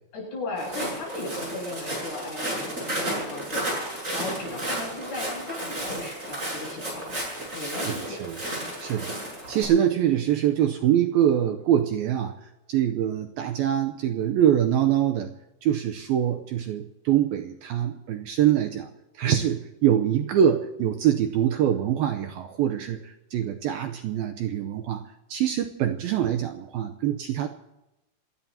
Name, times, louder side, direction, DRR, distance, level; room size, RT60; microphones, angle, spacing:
voice 1, 0.1-7.2 7.5-8.2 8.5-8.7, left 2 dB, 75° left, -2 dB, 10.0 m, -36 dB
Walk footsteps, 0.6-9.6, right 1 dB, 15° right, 8.3 m, -33 dB
voice 2, 7.9-8.4 8.8-12.3 12.7-15.3 15.6-18.9 19.2-25.0 25.3-27.5, right 10 dB, 80° right, 5 dB, 2.2 m, -24 dB
27.5 x 18.5 x 2.9 m, 0.93 s
omnidirectional pair, 5.0 m